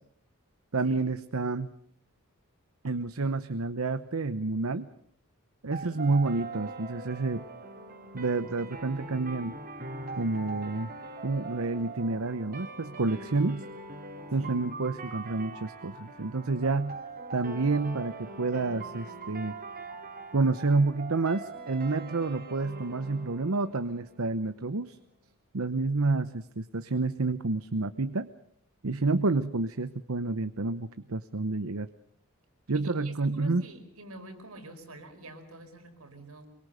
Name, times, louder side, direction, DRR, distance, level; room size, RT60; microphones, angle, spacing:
voice 1, 0.7-1.7 2.8-4.9 5.6-7.4 8.1-9.6 10.2-10.9 11.2-13.6 14.3-17.0 17.3-19.5 20.3-25.0 25.5-28.3 28.8-31.9 32.7-33.6, right 3 dB, 70° right, 11 dB, 0.9 m, -29 dB
sound 1, 5.7-24.7, right 3 dB, 45° right, 2.8 m, -42 dB
voice 2, 32.7-36.5, right 2 dB, 90° right, 5 dB, 4.8 m, -47 dB
25.0 x 23.5 x 6.7 m, 0.67 s
head